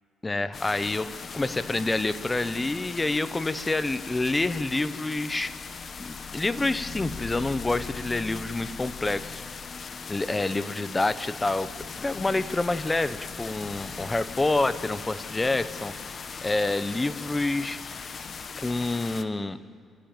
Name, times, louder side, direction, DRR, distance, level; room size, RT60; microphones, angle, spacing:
voice 1, 0.2-5.5 6.0-9.4 10.1-11.7 12.0-17.8 18.6-19.6, left 2 dB, 20° left, 13 dB, 1.1 m, -28 dB
sound 1, 0.5-19.2, left 5 dB, 45° left, 1.3 m, -39 dB
27.0 x 14.5 x 9.1 m, 2.2 s
cardioid pair, 90°, 0 cm